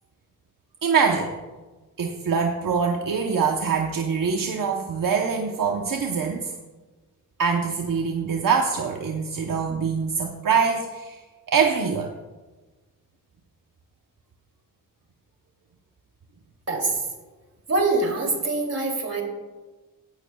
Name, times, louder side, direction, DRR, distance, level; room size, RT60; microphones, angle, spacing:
voice 1, 0.8-1.3 2.0-6.5 7.4-11.2 11.5-12.1, right 6 dB, 75° right, 2 dB, 0.9 m, -24 dB
voice 2, 16.7-17.0 17.7-19.2, right 2 dB, 50° right, 1 dB, 2.8 m, -24 dB
16.0 x 11.5 x 2.3 m, 1.2 s
wide cardioid pair, 145°, 33 cm